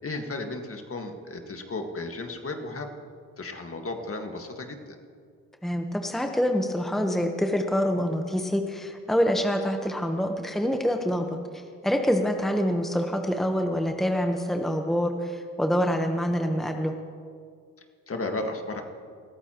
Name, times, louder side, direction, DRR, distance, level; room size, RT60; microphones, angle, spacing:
voice 1, 0.0-2.9 3.4-5.0 18.1-18.8, left 2 dB, 40° left, 4 dB, 1.9 m, -34 dB
voice 2, 5.6-11.4 11.8-16.9, equal, ahead, 4 dB, 1.1 m, -26 dB
20.5 x 14.0 x 3.1 m, 2.1 s
supercardioid pair, 55°, 35 cm